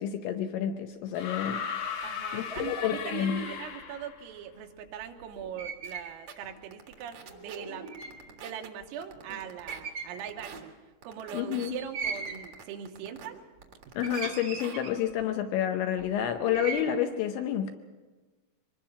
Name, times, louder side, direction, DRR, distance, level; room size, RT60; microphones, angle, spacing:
voice 1, 0.0-1.6 2.3-3.4 11.3-11.8 14.0-17.7, left 10 dB, 80° left, 6 dB, 2.7 m, -29 dB
sound 1, 1.1-4.2 5.5-5.6, left 7 dB, 60° left, 2.3 m, -37 dB
voice 2, 2.0-7.9 8.4-10.7 11.0-13.4, right 9 dB, 85° right, 4 dB, 3.9 m, -41 dB
sound 2, 2.5-3.7 5.4-6.2 6.4-6.5 7.2-8.3 8.8-8.9 9.1-9.4 9.7-10.6 11.6-12.5 13.2-13.7 14.0-15.2 16.0-16.9, right 4 dB, 50° right, 1.5 m, -39 dB
sound 3, 5.8-5.9 6.3-6.4 6.7-7.6 7.9-8.7 9.0-9.8 10.2-10.6 11.0-11.7 12.1-13.3 13.6-14.3 14.6-14.7, right 7 dB, 65° right, 1.7 m, -46 dB
24.5 x 20.5 x 5.7 m, 1.3 s
omnidirectional pair, 6.0 m